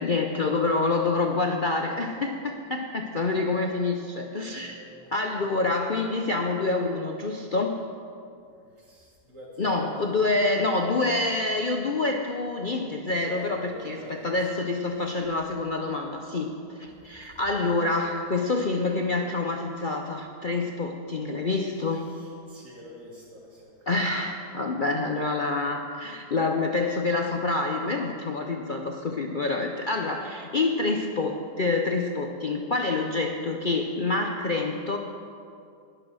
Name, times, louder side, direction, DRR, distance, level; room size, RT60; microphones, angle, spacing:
voice 1, 0.0-4.8 5.1-7.8 9.6-22.0 23.9-35.0, left 3 dB, 65° left, 3 dB, 0.4 m, -27 dB
voice 2, 4.5-5.1 8.4-10.0 13.3-14.3 17.0-17.4 21.9-23.9, left 1 dB, 45° right, -4 dB, 3.2 m, -46 dB
19.5 x 6.9 x 6.2 m, 2.4 s
omnidirectional pair, 1.8 m